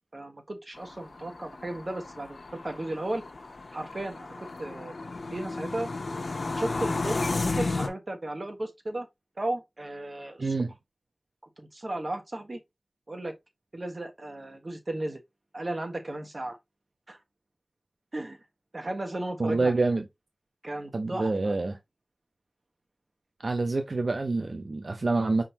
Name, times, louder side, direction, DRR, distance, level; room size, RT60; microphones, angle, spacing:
voice 1, 0.1-3.2 3.7-4.9 5.3-5.9 6.6-9.1 9.4-10.5 11.6-12.6 13.1-13.3 13.7-15.2 15.5-16.6 17.1-17.2 18.1-18.4 18.7-19.8 20.6-21.5, right 1 dB, 55° right, 1.2 m, -35 dB
sound 1, 0.7-7.9, left 3 dB, 85° left, 0.7 m, -33 dB
voice 2, 10.4-10.7 19.4-20.1 20.9-21.8 23.4-25.4, right 3 dB, 75° right, 0.6 m, -27 dB
5.1 x 3.7 x 2.9 m
wide cardioid pair, 55°, 0 cm